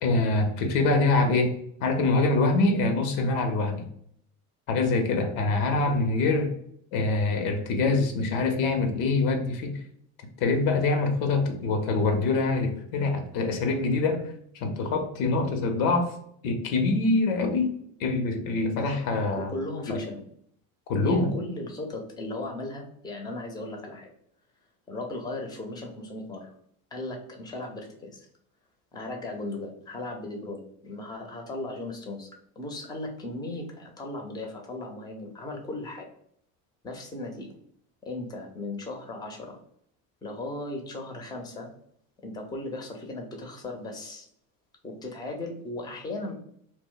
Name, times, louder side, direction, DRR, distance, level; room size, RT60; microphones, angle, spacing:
voice 1, 0.0-3.9 4.7-6.5 6.9-9.8 10.4-14.3 14.6-16.1 16.4-19.5 19.9-20.0 20.9-21.4, left 3 dB, 80° left, 5 dB, 0.7 m, -25 dB
voice 2, 19.4-20.2 21.0-24.1 24.9-26.5 26.9-28.3 28.9-32.3 32.6-36.1 36.8-37.5 38.0-39.6 40.2-41.7 42.2-44.3 44.8-46.3, left 2 dB, 10° left, 2 dB, 0.5 m, -37 dB
2.1 x 2.1 x 3.7 m, 0.66 s
supercardioid pair, 85°, 42 cm